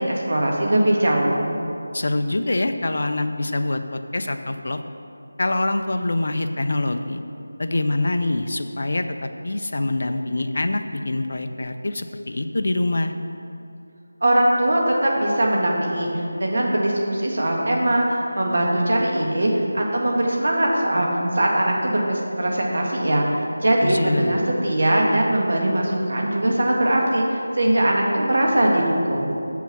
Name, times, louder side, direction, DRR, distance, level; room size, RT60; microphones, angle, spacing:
voice 1, 0.0-1.4 14.2-16.1 16.4-21.1 21.3-29.3, right 1 dB, 55° right, -1 dB, 1.7 m, -21 dB
voice 2, 1.9-4.8 5.4-7.2 7.6-13.1 23.8-24.4, left 2 dB, 55° left, 7 dB, 0.5 m, -25 dB
7.2 x 5.8 x 5.9 m, 2.6 s
figure-of-eight pair, 175°, 0 cm